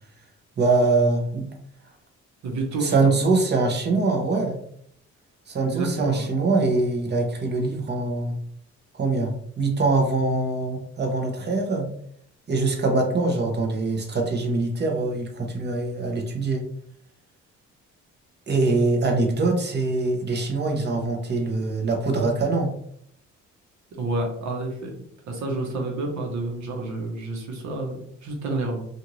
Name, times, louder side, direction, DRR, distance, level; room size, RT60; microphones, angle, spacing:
voice 1, 0.6-1.5 2.8-4.6 5.5-8.3 8.9-11.9 12.5-16.6 18.5-22.7, right 3 dB, 35° right, 2 dB, 0.7 m, -23 dB
voice 2, 2.4-2.9 5.7-6.3 23.9-24.9 25.2-28.9, right 2 dB, 70° right, 1 dB, 1.0 m, -29 dB
2.5 x 2.5 x 3.0 m, 0.67 s
cardioid pair, 105°, 30 cm